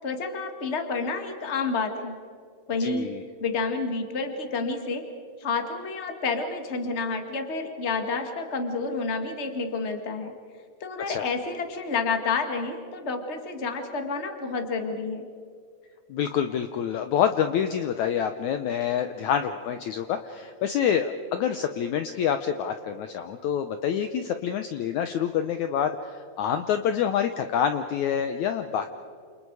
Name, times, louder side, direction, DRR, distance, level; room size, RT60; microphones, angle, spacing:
voice 1, 0.0-2.2 2.7-3.1 3.4-5.1 5.4-10.3 10.8-15.3, left 4 dB, 30° left, 5 dB, 1.3 m, -29 dB
voice 2, 2.8-3.2 11.1-11.3 16.1-28.9, left 8 dB, 85° left, 8 dB, 1.6 m, -27 dB
29.0 x 29.0 x 4.8 m, 2.3 s
omnidirectional pair, 4.5 m